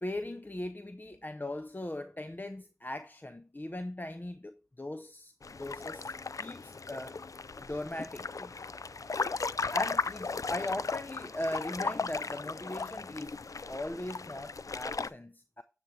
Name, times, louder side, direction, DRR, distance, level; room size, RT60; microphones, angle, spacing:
voice 1, 0.0-5.3 5.6-7.2 7.6-8.5 9.7-13.4 13.7-15.6, left 1 dB, 35° left, 0.7 m, -39 dB
sound 1, 5.4-15.1, left 4 dB, 75° left, 0.4 m, -36 dB
9.3 x 7.6 x 3.2 m
wide cardioid pair, 40°, 6 cm